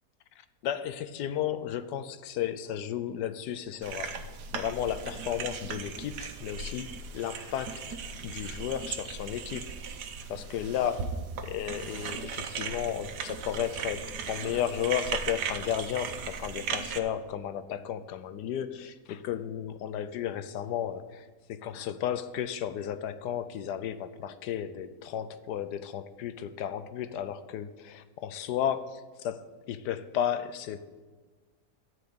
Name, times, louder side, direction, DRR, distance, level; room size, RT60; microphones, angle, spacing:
voice 1, 0.6-9.7 10.3-31.0, left 10 dB, 90° left, 1.3 m, -34 dB
sound 1, 3.8-17.0, right 6 dB, 85° right, 1.4 m, -37 dB
13.0 x 4.8 x 8.5 m
omnidirectional pair, 1.7 m